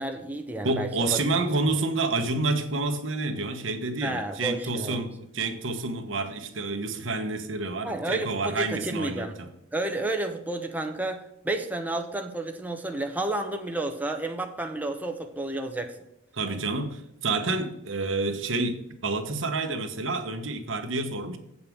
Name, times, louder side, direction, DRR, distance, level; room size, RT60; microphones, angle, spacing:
voice 1, 0.0-1.2 4.0-5.1 7.8-9.3 9.7-16.0, right 2 dB, 10° right, 0.8 m, -31 dB
voice 2, 0.6-9.5 16.3-21.4, right 3 dB, 85° right, 1.3 m, -29 dB
8.5 x 5.5 x 6.3 m
head